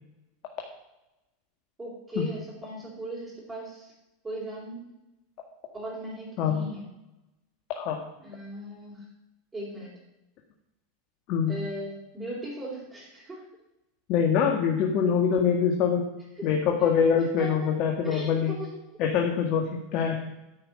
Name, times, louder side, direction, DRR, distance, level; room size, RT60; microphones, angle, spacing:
voice 1, 1.8-3.9 4.2-4.8 5.7-6.9 8.2-9.0 9.5-9.9 11.5-13.4 16.4-16.5 17.4-17.5 18.0-18.7, right 1 dB, 15° right, -5 dB, 4.1 m, -38 dB
voice 2, 14.1-16.0 16.4-18.5 19.0-20.2, left 7 dB, 55° left, 1 dB, 1.8 m, -24 dB
10.5 x 6.0 x 8.8 m, 0.95 s
hypercardioid pair, 110°, 0 cm